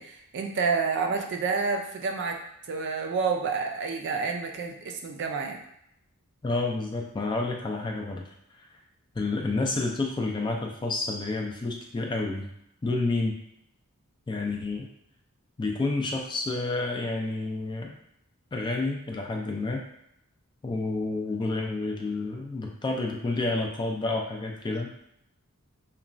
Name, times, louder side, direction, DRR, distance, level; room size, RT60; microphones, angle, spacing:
voice 1, 0.0-2.4 2.7-5.6, right 4 dB, 55° right, 3 dB, 0.4 m, -29 dB
voice 2, 6.4-8.3 8.6-8.7 9.1-12.5 12.8-13.4 14.3-14.9 15.6-17.9 18.5-19.8 20.6-24.9, left 3 dB, 20° left, 1 dB, 0.3 m, -29 dB
2.9 x 2.2 x 2.5 m, 0.76 s
head